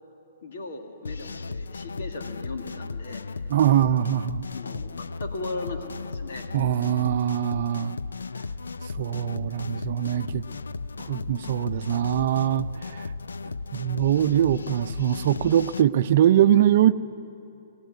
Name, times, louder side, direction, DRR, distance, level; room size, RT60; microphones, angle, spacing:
voice 1, 0.4-3.3 4.5-6.5 7.5-7.9, left 3 dB, 70° left, 4 dB, 2.3 m, -37 dB
sound 1, 1.0-15.8, left 4 dB, 90° left, 0.4 m, -35 dB
voice 2, 3.5-4.5 6.5-8.0 9.0-10.4 11.1-12.7 13.7-16.9, right 11 dB, 60° right, 12 dB, 0.6 m, -22 dB
21.5 x 15.0 x 9.3 m, 2.7 s
hypercardioid pair, 130°, 0 cm